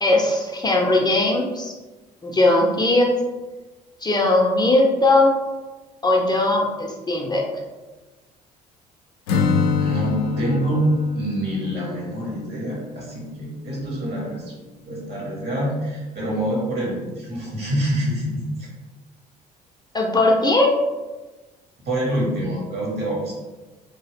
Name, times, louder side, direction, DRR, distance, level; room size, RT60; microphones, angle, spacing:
voice 1, 0.0-1.7 2.2-3.1 4.0-5.3 6.0-7.4 19.9-20.7, left 2 dB, 20° left, 0 dB, 0.5 m, -19 dB
Acoustic guitar / Strum, 9.3-13.2, left 5 dB, 80° left, 0.4 m, -25 dB
voice 2, 9.8-10.9 11.1-14.5 14.8-18.7 21.8-23.3, right 1 dB, 55° right, -3 dB, 1.5 m, -26 dB
2.8 x 2.3 x 3.4 m, 1.2 s
hypercardioid pair, 55°, 20 cm